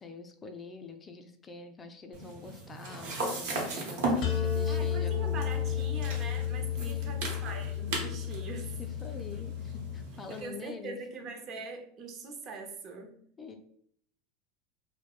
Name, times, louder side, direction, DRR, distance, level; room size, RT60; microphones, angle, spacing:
voice 1, 0.0-5.5 6.8-7.3 8.8-11.0 13.4-13.6, left 4 dB, 25° left, 6 dB, 0.3 m, -45 dB
sound 1, 2.1-10.4, right 2 dB, 70° right, 0.8 m, -37 dB
sound 2, 4.2-10.0, left 9 dB, 50° left, 0.7 m, -32 dB
voice 2, 4.7-8.8 10.3-13.2, right 4 dB, 45° right, 4 dB, 0.5 m, -42 dB
2.2 x 2.1 x 2.8 m, 0.63 s
hypercardioid pair, 90°, 0 cm